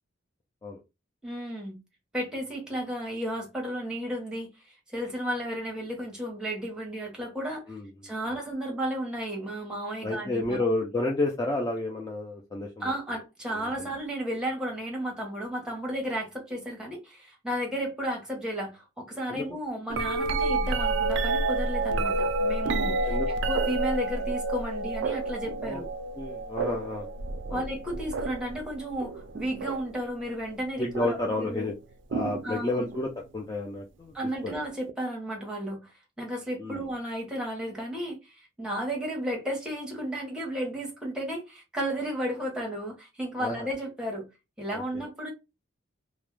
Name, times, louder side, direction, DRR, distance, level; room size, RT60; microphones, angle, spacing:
voice 1, 1.2-1.8 2.1-7.7 8.0-10.6 12.8-25.9 27.5-31.7 32.4-32.9 34.1-44.3 44.6-45.3, equal, 5° right, 0.8 m, -33 dB
voice 2, 10.0-12.9 13.5-13.9 19.3-19.4 21.9-22.1 23.1-23.3 25.6-25.8 26.2-27.1 27.5-27.7 30.8-31.7 32.1-34.1 34.4-34.7 36.6-36.9 43.4-43.7 44.7-45.0, left 2 dB, 20° left, 0.3 m, -31 dB
sound 1, 19.9-30.0 30.9-31.4 32.1-33.1 34.9-35.0, right 3 dB, 65° right, 0.3 m, -29 dB
2.3 x 2.0 x 3.0 m
head